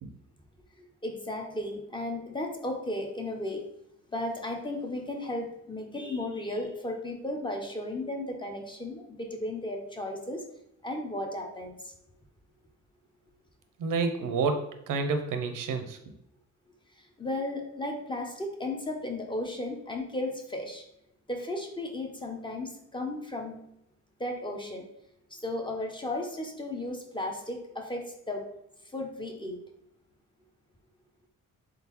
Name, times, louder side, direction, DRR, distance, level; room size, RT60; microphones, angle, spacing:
voice 1, 0.8-3.6 4.1-10.4 10.8-11.9 17.0-20.8 21.3-23.6 24.2-24.9 25.3-28.5 28.9-29.6, left 1 dB, 15° left, 2 dB, 0.4 m, -35 dB
voice 2, 13.8-16.2, right 4 dB, 85° right, 6 dB, 0.6 m, -29 dB
3.7 x 3.6 x 2.9 m, 0.82 s
wide cardioid pair, 150°, 31 cm